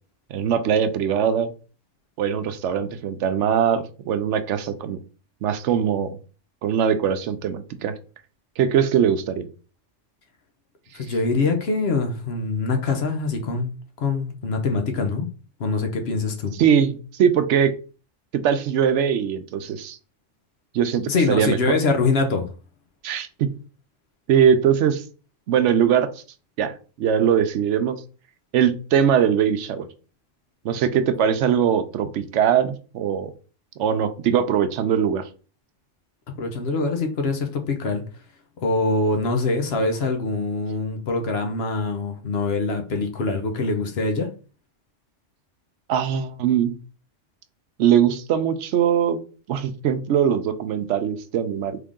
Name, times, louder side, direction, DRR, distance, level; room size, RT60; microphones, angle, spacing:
voice 1, 0.3-1.5 2.2-5.0 5.4-6.2 6.6-7.9 8.6-9.5 16.6-17.7 18.4-20.0 20.7-21.0 21.3-21.6 23.0-23.5 24.3-25.0 25.5-26.1 26.6-28.0 28.5-29.9 30.6-33.3 33.8-35.3 45.9-46.7 47.8-49.2 49.5-51.8, right 8 dB, 75° right, 0.9 m, -21 dB
voice 2, 10.9-13.7 14.0-15.3 15.6-16.5 21.1-22.5 36.4-38.0 38.6-44.3, left 3 dB, 60° left, 1.0 m, -24 dB
3.8 x 3.3 x 3.6 m
omnidirectional pair, 1.3 m